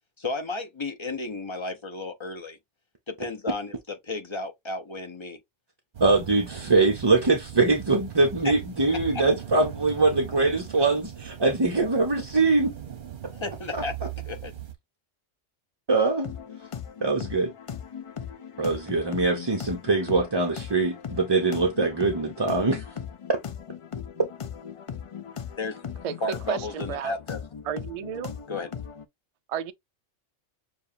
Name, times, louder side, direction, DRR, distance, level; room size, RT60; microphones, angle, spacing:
voice 1, 0.2-2.6 3.1-5.4 8.4-8.5 9.1-9.2 13.3-14.0 14.2-14.5 25.6-25.8 26.2-27.4 28.5-28.7, left 2 dB, 30° left, 0.7 m, -33 dB
sound 1, 5.9-14.7, right 10 dB, 45° right, 1.0 m, -39 dB
voice 2, 6.0-12.7 15.9-16.3 17.0-17.5 18.6-22.8, right 3 dB, 30° right, 0.6 m, -23 dB
sound 2, 16.2-29.0, left 7 dB, 55° left, 0.3 m, -39 dB
voice 3, 26.5-27.1 27.7-28.3 29.5-29.7, right 9 dB, 70° right, 0.3 m, -32 dB
6.8 x 2.5 x 2.7 m
omnidirectional pair, 1.2 m